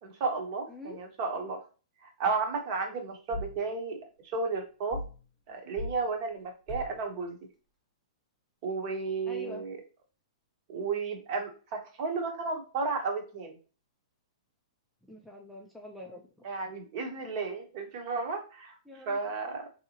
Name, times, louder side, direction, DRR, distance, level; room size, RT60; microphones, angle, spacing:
voice 1, 0.0-1.6 2.0-4.0 4.3-5.0 5.5-7.4 8.6-9.8 10.7-13.5 16.4-18.7 19.1-19.7, right 4 dB, 40° right, 3 dB, 1.0 m, -33 dB
voice 2, 0.7-1.0 9.3-9.6 15.1-16.3 18.9-19.2, left 1 dB, ahead, -1 dB, 0.4 m, -45 dB
sound 1, 3.3-3.6 4.9-5.2 5.8-6.0 6.7-7.0, left 1 dB, 15° left, 0.9 m, -38 dB
3.6 x 2.8 x 2.8 m, 0.35 s
hypercardioid pair, 155°, 3 cm